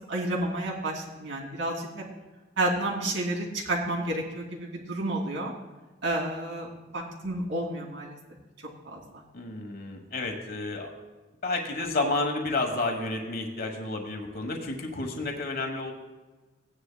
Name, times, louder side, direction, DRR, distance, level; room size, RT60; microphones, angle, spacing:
voice 1, 0.1-2.0 2.6-5.5 6.0-6.7 6.9-8.2 8.8-9.2, right 1 dB, 80° right, -2 dB, 2.9 m, -30 dB
voice 2, 9.3-10.9 11.4-15.9, left 2 dB, 50° left, 3 dB, 1.2 m, -31 dB
16.5 x 10.0 x 2.2 m, 1.2 s
head